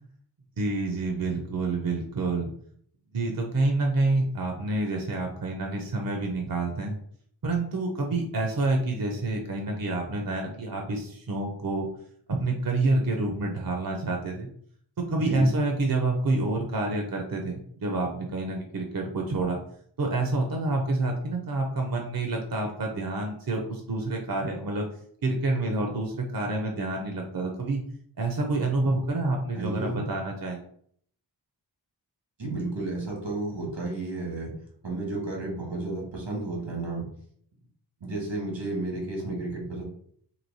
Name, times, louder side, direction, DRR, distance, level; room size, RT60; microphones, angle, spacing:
voice 1, 0.6-2.5 3.1-7.0 7.4-11.9 12.3-14.5 15.1-19.6 20.0-24.9 25.2-27.8 28.2-30.6, right 2 dB, 50° right, 2 dB, 0.7 m, -28 dB
voice 2, 15.2-15.5 29.5-30.0 32.4-34.5 34.8-37.0 38.0-39.8, right 2 dB, 85° right, -1 dB, 1.5 m, -32 dB
3.1 x 2.8 x 4.0 m, 0.62 s
wide cardioid pair, 75°, 44 cm